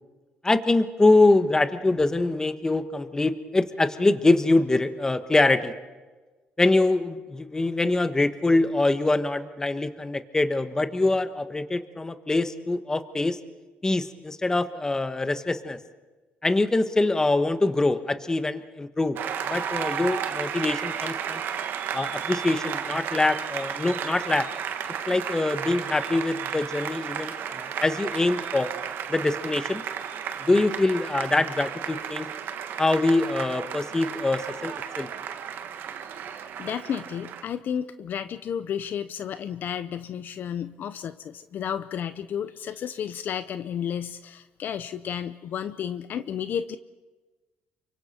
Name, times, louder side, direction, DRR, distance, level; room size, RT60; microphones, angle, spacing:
voice 1, 0.4-5.7 6.6-13.4 13.8-15.8 16.4-19.2 19.5-21.4 21.9-24.5 25.1-28.7 29.1-29.8 30.4-32.3 32.8-35.1, left 2 dB, 15° left, 10 dB, 1.3 m, -24 dB
Applause, 19.2-37.4, right 8 dB, 65° right, 1.5 m, -33 dB
voice 2, 36.2-46.8, left 8 dB, 55° left, 12 dB, 0.7 m, -32 dB
28.5 x 24.5 x 4.4 m, 1.3 s
cardioid pair, 110°, 4 cm